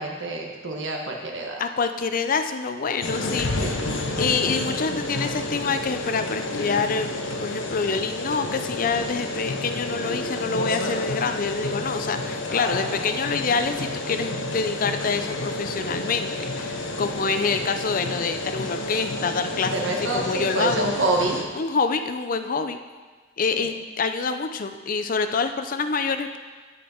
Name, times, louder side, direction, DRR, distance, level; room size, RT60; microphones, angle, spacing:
voice 1, 0.0-1.6 3.6-4.0 19.7-21.4 23.5-23.7, right 2 dB, 70° right, 1 dB, 1.4 m, -27 dB
voice 2, 1.6-3.8 4.2-7.1 7.4-16.3 16.6-20.9 21.6-22.8 23.4-26.4, left 5 dB, 45° left, 8 dB, 0.5 m, -26 dB
sound 1, 3.0-21.4, left 2 dB, 75° left, 0.9 m, -30 dB
8.4 x 8.3 x 4.4 m, 1.4 s
head